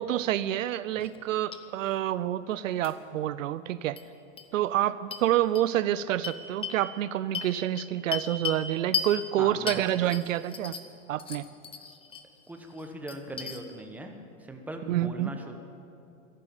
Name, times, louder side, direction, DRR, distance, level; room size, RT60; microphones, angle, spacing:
voice 1, 0.0-4.0 4.5-10.7 11.1-11.5 14.9-15.3, right 12 dB, 70° right, 16 dB, 0.6 m, -28 dB
sound 1, 1.0-1.2 1.5-1.6 2.8-2.9 4.0-4.1 4.4-4.5 5.1-5.2 5.5-5.6 6.2-6.8 7.3-8.6 8.9-9.1 9.7-10.9 11.2-12.2 12.6-13.6, left 6 dB, 15° left, 0.9 m, -35 dB
voice 2, 9.4-9.8 12.5-14.2 14.5-15.6, right 1 dB, 5° right, 4 dB, 1.2 m, -40 dB
13.5 x 12.0 x 9.0 m, 2.6 s
hypercardioid pair, 125°, 41 cm